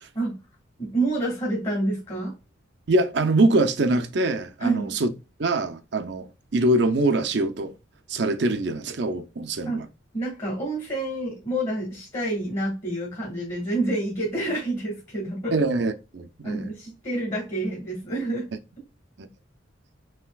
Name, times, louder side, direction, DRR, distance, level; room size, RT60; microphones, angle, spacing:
voice 1, 0.8-2.3 4.6-4.9 9.6-9.8 10.1-15.6 16.4-18.5, right 2 dB, 30° left, 1.8 m, -28 dB
voice 2, 2.9-5.1 5.4-7.7 8.1-9.9 15.5-16.7 19.2-19.3, right 2 dB, 60° right, 0.6 m, -23 dB
5.6 x 3.0 x 2.3 m
head